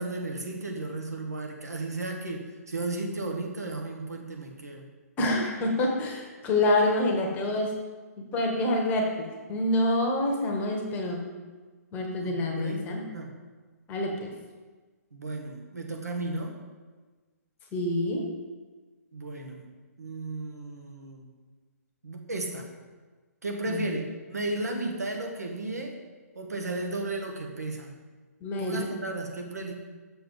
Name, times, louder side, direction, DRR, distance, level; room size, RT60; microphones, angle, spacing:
voice 1, 0.0-4.9 5.2-5.5 12.2-12.9 13.1-13.3 15.1-16.6 19.1-19.7 20.0-21.3 22.0-22.7 23.4-26.0 26.3-27.9 28.6-29.7, right 2 dB, 75° right, 2 dB, 1.1 m, -34 dB
voice 2, 5.2-7.7 8.3-11.2 11.9-13.1 13.9-14.3 17.7-18.3 23.7-23.9 28.4-28.9, left 1 dB, 20° left, 1 dB, 1.0 m, -27 dB
6.8 x 5.4 x 3.8 m, 1.4 s
figure-of-eight pair, 125°, 9 cm